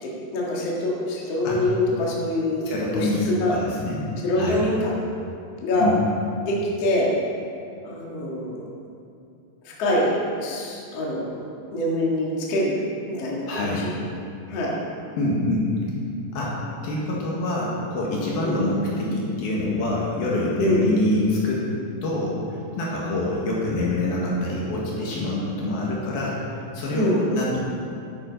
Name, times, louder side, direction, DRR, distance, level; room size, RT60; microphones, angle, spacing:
voice 1, 0.0-3.6 4.2-4.9 5.6-5.9 6.4-7.1 7.8-8.6 9.6-10.1 10.4-12.8 13.1-14.0 14.5-14.8 18.4-18.7 20.6-20.8 26.9-27.2, left 1 dB, 45° left, -4 dB, 2.3 m, -25 dB
voice 2, 2.6-4.1 4.3-4.6 5.8-6.0 13.5-13.9 15.2-15.7 16.3-16.5 16.8-21.7 22.0-22.4 22.8-27.6, left 2 dB, 65° left, -4 dB, 3.2 m, -25 dB
10.5 x 8.7 x 5.2 m, 2.6 s
omnidirectional pair, 4.8 m